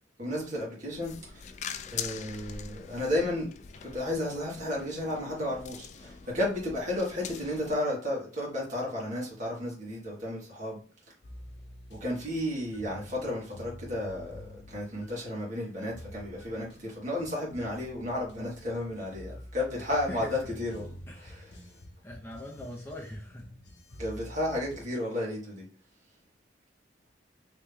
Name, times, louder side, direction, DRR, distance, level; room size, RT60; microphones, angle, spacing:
voice 1, 0.2-1.5 1.9-3.5 3.8-10.8 11.9-20.9 21.2-21.4 24.0-25.7, left 1 dB, 45° right, -4 dB, 1.9 m, -33 dB
sound 1, 0.9-7.7, left 7 dB, 40° left, 0.3 m, -43 dB
sound 2, 11.2-24.8, equal, 65° left, 0.9 m, -48 dB
voice 2, 19.7-20.3 21.1-21.5 22.0-23.5, left 1 dB, 15° left, -1 dB, 0.6 m, -42 dB
3.3 x 3.1 x 3.5 m, 0.39 s
head